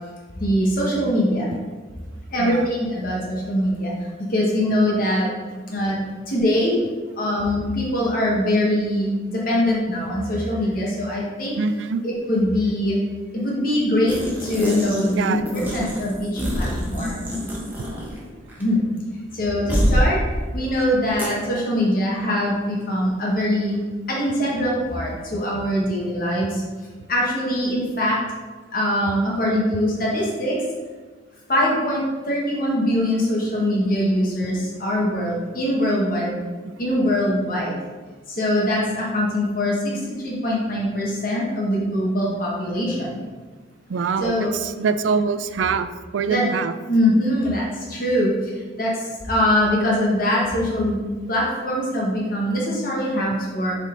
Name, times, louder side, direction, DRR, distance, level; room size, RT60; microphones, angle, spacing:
voice 1, 0.3-1.5 2.3-3.9 4.2-5.3 5.7-6.0 6.3-6.8 7.2-11.5 12.0-13.0 13.3-17.3 18.6-18.9 19.3-20.2 20.5-23.8 24.1-26.6 27.1-28.2 28.7-30.6 31.5-36.4 36.8-37.7 38.3-43.2 44.2-44.5 46.3-46.4 46.9-51.0 51.3-53.8, left 1 dB, 50° left, -4 dB, 1.3 m, -22 dB
voice 2, 2.4-2.7 11.6-12.0 15.1-15.4 16.9-17.0 17.2-17.3 17.8-17.9 19.7-19.8 27.0-27.1 43.9-46.7, right 5 dB, 80° right, 12 dB, 0.4 m, -25 dB
sound 1, 14.1-15.2 15.5-18.2 18.5-18.6 19.7-20.1 21.2-21.3, equal, 10° right, 1.0 m, -25 dB
7.3 x 3.8 x 3.8 m, 1.4 s
head